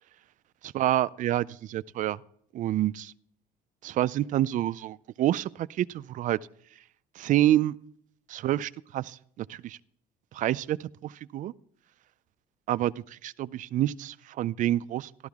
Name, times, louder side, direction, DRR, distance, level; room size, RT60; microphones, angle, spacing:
voice 1, 0.7-2.2 2.5-3.1 3.8-6.4 7.2-7.8 8.3-9.8 10.3-11.5 12.7-15.1, right 13 dB, 50° right, 18 dB, 0.4 m, -28 dB
13.0 x 12.5 x 3.5 m, 0.67 s
cardioid pair, 120°, 17 cm